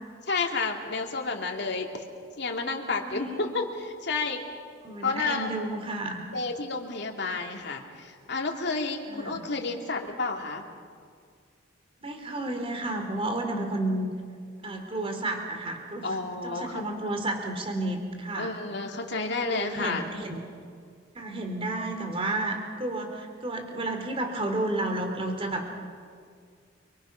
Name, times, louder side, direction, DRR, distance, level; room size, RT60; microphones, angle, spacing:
voice 1, 0.3-1.9 2.4-4.4 5.0-5.5 6.3-10.6 16.0-16.8 18.4-20.1, left 3 dB, 65° left, 2 dB, 2.8 m, -30 dB
voice 2, 2.9-3.5 4.8-6.2 9.0-9.5 12.0-14.1 14.6-16.2 16.4-18.5 19.4-20.4 21.1-25.7, right 2 dB, 30° right, 4 dB, 2.9 m, -32 dB
29.5 x 24.5 x 6.0 m, 2.1 s
head